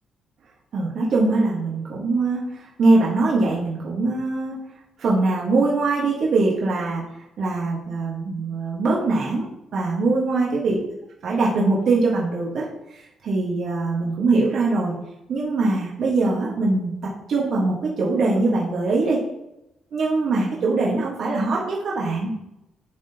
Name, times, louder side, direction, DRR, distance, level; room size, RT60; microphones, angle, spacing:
voice 1, 0.7-4.6 5.0-7.0 7.4-10.8 11.2-12.6 12.9-14.9 15.3-19.2 19.9-22.3, right 3 dB, 65° right, -4 dB, 1.4 m, -22 dB
11.0 x 3.8 x 2.9 m, 0.90 s
cardioid pair, 90°, 0 cm